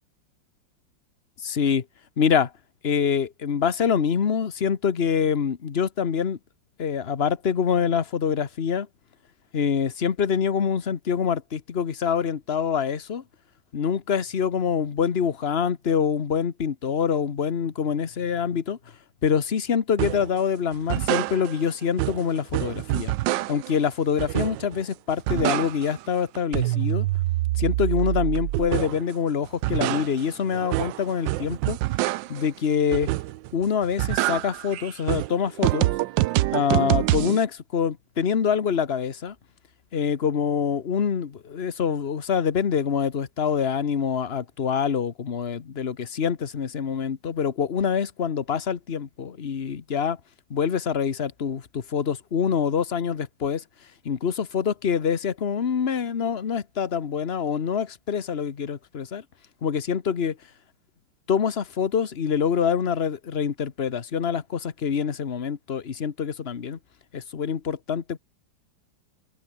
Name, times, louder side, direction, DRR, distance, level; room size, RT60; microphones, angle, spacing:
voice 1, 1.4-1.8 2.2-2.5 2.8-6.4 6.8-8.9 9.5-13.2 13.7-18.8 19.2-23.1 23.5-27.1 27.6-31.8 32.3-33.1 33.5-35.9 36.5-39.3 39.9-50.2 50.5-53.6 54.0-59.2 59.6-60.4 61.3-66.8 67.1-68.2, left 7 dB, 35° left, 1.2 m, -25 dB
sound 1, 20.0-20.3 20.7-21.7 22.0-23.8 24.2-24.8 25.1-26.1 26.4-29.1 29.5-32.5 32.9-33.5 33.8-37.4, right 17 dB, 75° right, 1.2 m, -26 dB
omnidirectional pair, 2.1 m